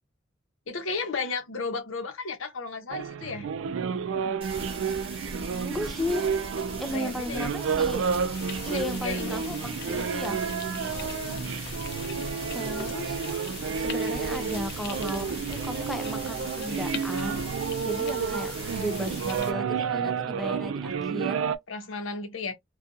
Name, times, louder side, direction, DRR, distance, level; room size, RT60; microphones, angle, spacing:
voice 1, 0.7-3.5 6.6-7.5 8.6-9.4 10.8-11.4 21.7-22.5, left 4 dB, 85° left, 0.8 m, -34 dB
sound 1, 2.9-21.6, right 6 dB, 75° right, 0.3 m, -31 dB
sound 2, 4.4-19.4, right 2 dB, 30° right, 1.0 m, -40 dB
voice 2, 5.6-6.3 6.8-8.1 8.6-10.4 12.5-13.2 13.8-21.4, left 1 dB, ahead, 0.4 m, -35 dB
sound 3, 8.3-19.5, left 7 dB, 60° left, 0.5 m, -42 dB
2.4 x 2.3 x 2.6 m
head